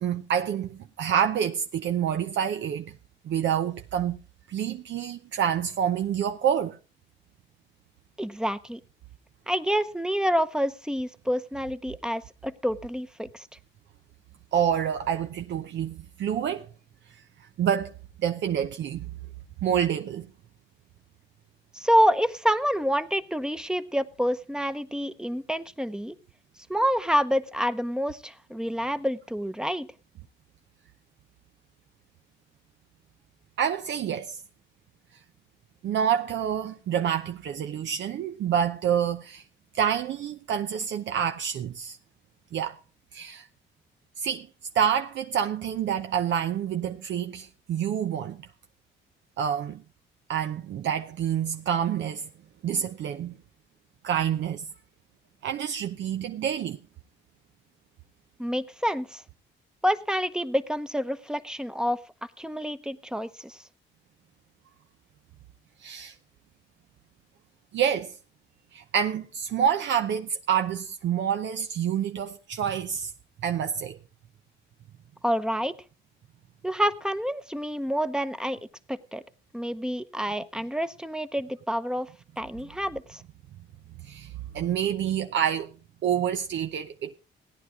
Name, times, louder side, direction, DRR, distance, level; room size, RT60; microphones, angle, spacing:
voice 1, 0.0-2.9 3.2-4.2 4.5-6.8 14.5-16.7 17.6-17.9 18.2-19.1 19.6-20.3 33.6-34.4 35.8-39.4 39.7-42.0 42.5-42.8 43.1-43.5 44.2-44.5 44.7-48.4 49.4-49.8 50.3-52.3 52.6-53.4 54.0-54.7 55.4-56.8 65.8-66.1 67.7-68.2 68.7-73.1 73.4-73.9 84.0-85.7 86.0-87.1, right 8 dB, 65° right, 0.7 m, -27 dB
voice 2, 8.2-8.8 9.5-13.5 21.7-26.2 26.7-29.9 58.4-59.2 59.8-62.0 62.4-63.6 75.2-75.7 76.6-78.6 78.9-79.2 79.5-82.1 82.4-83.2, equal, 5° right, 0.8 m, -27 dB
17.0 x 9.9 x 3.6 m
cardioid pair, 90°, 20 cm